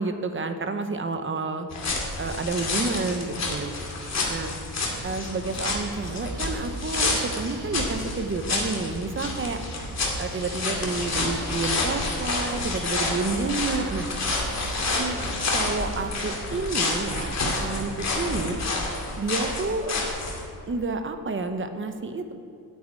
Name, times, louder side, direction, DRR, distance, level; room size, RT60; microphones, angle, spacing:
voice 1, 0.0-1.7 2.2-3.8 4.3-4.5 5.0-9.6 10.2-14.1 15.0-15.2 15.5-18.6 19.2-20.0 20.7-22.3, right 3 dB, 30° right, 7 dB, 0.8 m, -30 dB
sound 1, 1.7-20.4, left 3 dB, 40° left, 2.3 m, -29 dB
sound 2, 4.9-16.1, right 4 dB, 50° right, 1.7 m, -40 dB
9.2 x 8.5 x 9.5 m, 2.5 s
wide cardioid pair, 155°, 39 cm